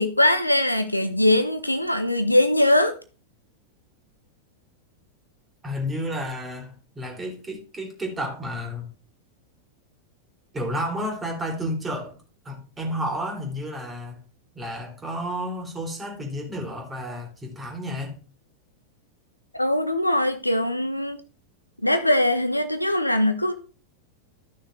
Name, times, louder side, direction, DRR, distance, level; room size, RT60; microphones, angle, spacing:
voice 1, 0.0-2.9 19.5-21.2 21.8-23.5, left 1 dB, 90° left, 0.9 m, -21 dB
voice 2, 5.6-8.9 10.5-12.2 12.4-14.2 14.5-18.2, equal, 15° right, 3.0 m, -31 dB
13.5 x 6.3 x 3.2 m
figure-of-eight pair, 90°, 0 cm